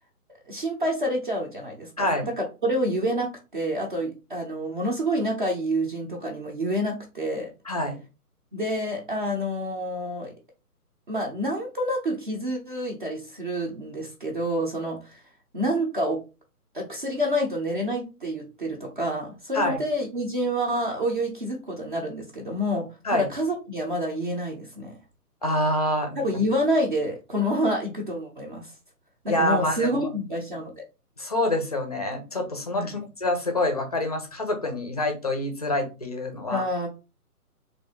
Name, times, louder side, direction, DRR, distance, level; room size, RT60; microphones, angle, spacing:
voice 1, 0.5-7.5 8.5-10.3 11.1-15.2 15.5-16.2 16.7-22.9 23.1-25.0 26.2-28.7 29.4-30.8 32.8-33.0 36.5-36.9, equal, 35° right, -1 dB, 0.7 m, -28 dB
voice 2, 2.0-2.3 7.6-8.0 19.5-19.8 23.0-23.3 25.4-26.2 29.3-30.0 31.2-36.6, left 1 dB, 25° left, 5 dB, 0.5 m, -26 dB
3.3 x 2.6 x 3.6 m, 0.30 s
hypercardioid pair, 150°, 46 cm